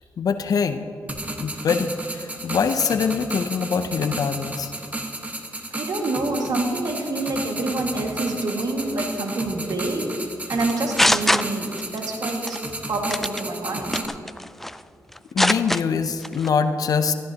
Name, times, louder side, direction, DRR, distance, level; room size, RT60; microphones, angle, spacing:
voice 1, 0.2-0.8 1.4-4.7 15.3-17.1, left 6 dB, 65° left, 9 dB, 0.6 m, -23 dB
sound 1, 1.1-14.1, right 1 dB, 20° right, 1.4 m, -33 dB
voice 2, 5.7-10.1 10.5-12.6 12.9-14.0, right 2 dB, 70° right, 2 dB, 1.9 m, -27 dB
sound 2, 10.6-12.0 12.3-12.6 13.1-13.4 13.9-14.8 15.1-15.8 16.2-16.5, equal, 5° left, 0.3 m, -22 dB
15.0 x 14.5 x 2.9 m, 2.6 s
cardioid pair, 65°, 7 cm